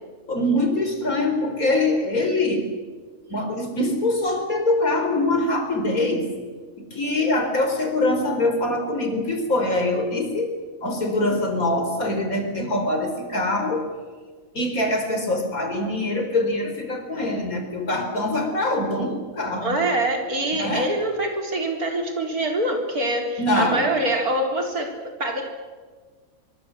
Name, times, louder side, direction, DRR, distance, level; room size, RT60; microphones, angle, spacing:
voice 1, 0.3-2.7 3.3-6.3 6.9-10.5 10.8-13.8 14.5-19.8 20.5-20.9 23.4-23.9, left 2 dB, 70° left, 5 dB, 4.8 m, -23 dB
voice 2, 19.5-25.4, right 1 dB, 90° right, 2 dB, 4.5 m, -25 dB
24.5 x 23.5 x 7.8 m, 1.5 s
omnidirectional pair, 1.5 m